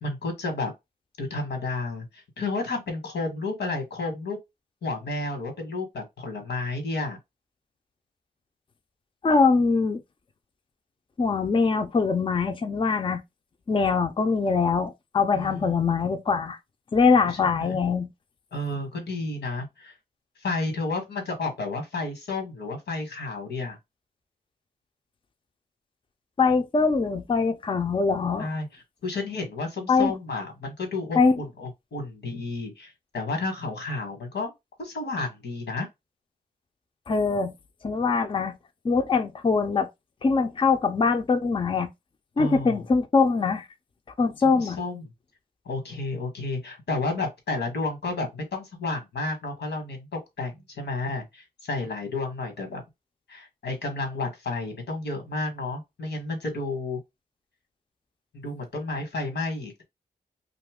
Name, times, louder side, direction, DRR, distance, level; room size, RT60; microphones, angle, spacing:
voice 1, 0.0-0.7 1.2-4.4 4.8-7.2 15.3-15.8 17.2-17.8 18.5-19.9 20.4-23.8 28.4-34.5 34.8-35.9 42.4-42.8 44.5-45.1 45.6-52.8 53.3-57.0 58.3-59.8, left 3 dB, 90° left, 1.3 m, -31 dB
voice 2, 9.2-10.0 11.2-13.2 13.7-16.6 16.9-18.1 26.4-28.5 29.9-30.1 31.2-31.4 37.1-37.5 37.8-38.5 38.8-39.9 40.2-41.9 42.4-43.7 44.2-44.8, left 4 dB, 30° left, 0.4 m, -23 dB
2.7 x 2.4 x 3.5 m
wide cardioid pair, 90°, 17 cm